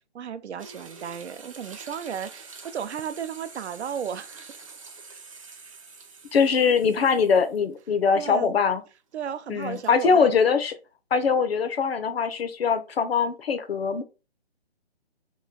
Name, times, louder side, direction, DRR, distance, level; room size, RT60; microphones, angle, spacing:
voice 1, 0.1-4.5 8.1-8.5 9.1-10.4, right 8 dB, 90° right, 0.5 m, -34 dB
sound 1, 0.6-7.8 8.2-8.3 9.5-10.0, right 4 dB, 35° right, 0.4 m, -46 dB
voice 2, 6.3-8.8 9.5-10.7 11.1-14.0, left 6 dB, 65° left, 0.7 m, -22 dB
3.0 x 2.2 x 3.7 m
hypercardioid pair, 160°, 32 cm